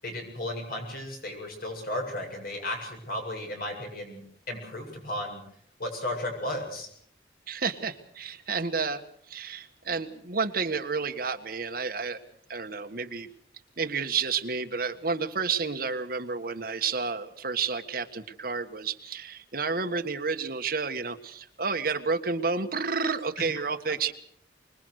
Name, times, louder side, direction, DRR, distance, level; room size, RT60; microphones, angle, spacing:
voice 1, 0.0-5.4 5.8-6.9, left 1 dB, 55° left, 2 dB, 7.9 m, -34 dB
voice 2, 7.5-9.0 9.3-12.2 12.5-13.3 13.8-24.1, right 5 dB, 55° right, 6 dB, 1.7 m, -30 dB
25.0 x 21.5 x 6.6 m, 0.65 s
head